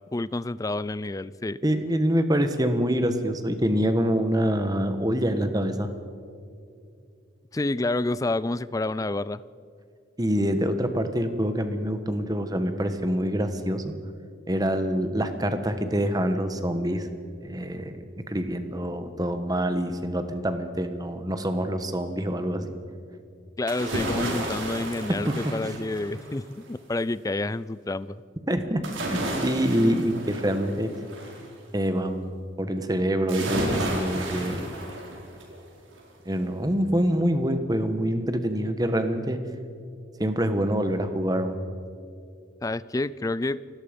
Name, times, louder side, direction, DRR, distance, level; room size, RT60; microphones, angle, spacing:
voice 1, 0.1-1.6 7.5-9.4 23.6-28.2 42.6-43.6, left 2 dB, 15° left, 18 dB, 0.4 m, -29 dB
voice 2, 1.6-5.9 10.2-13.9 14.5-17.1 17.4-22.7 25.3-25.4 28.5-30.9 31.7-32.3 32.6-34.6 36.2-39.4 40.2-41.6, equal, 20° right, 9 dB, 1.3 m, -26 dB
sound 1, 23.7-26.5 28.8-31.5 33.3-35.6 36.0-36.1, right 1 dB, 85° right, 4.4 m, -32 dB
29.5 x 17.0 x 5.2 m, 2.4 s
head